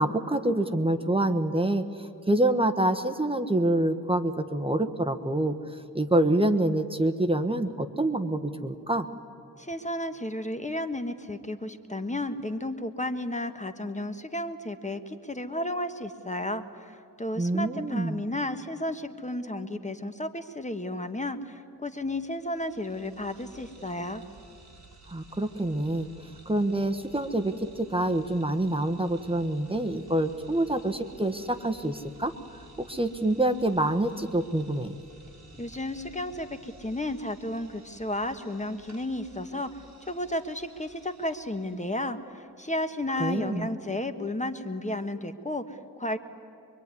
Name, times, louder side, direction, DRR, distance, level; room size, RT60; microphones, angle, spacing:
voice 1, 0.0-5.6 5.9-9.1 17.4-18.2 25.1-26.1 26.4-32.3 32.8-34.9 43.2-43.7, right 1 dB, 15° right, 6 dB, 1.2 m, -26 dB
voice 2, 9.6-24.2 35.6-39.7 40.1-46.2, left 1 dB, 20° left, 8 dB, 1.4 m, -33 dB
sound 1, 22.3-42.0, right 3 dB, 45° right, 5.3 m, -53 dB
25.0 x 24.0 x 9.7 m, 2.7 s
wide cardioid pair, 90°, 36 cm